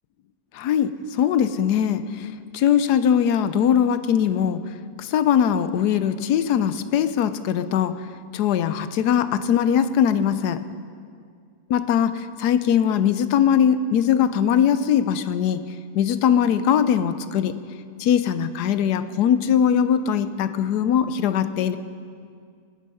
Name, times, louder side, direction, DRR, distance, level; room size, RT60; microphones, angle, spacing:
voice 1, 0.5-2.0 2.5-4.6 5.0-7.9 8.3-10.6 11.7-15.6 15.9-17.5 18.0-21.8, left 8 dB, 90° left, 12 dB, 1.2 m, -21 dB
18.0 x 9.8 x 5.5 m, 2.2 s
omnidirectional pair, 1.7 m